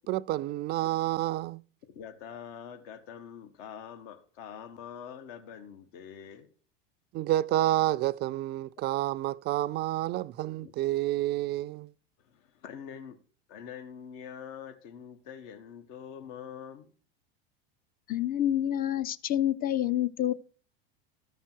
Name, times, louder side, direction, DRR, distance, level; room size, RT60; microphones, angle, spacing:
voice 1, 0.1-1.6 7.1-11.9, right 15 dB, 35° right, 0.4 m, -29 dB
voice 2, 1.9-6.5 10.6-10.7 12.2-13.2 13.5-16.9, left 8 dB, 60° left, 1.4 m, -45 dB
voice 3, 18.1-20.3, left 11 dB, 30° left, 0.6 m, -28 dB
13.5 x 5.8 x 4.5 m
hypercardioid pair, 105°, 30 cm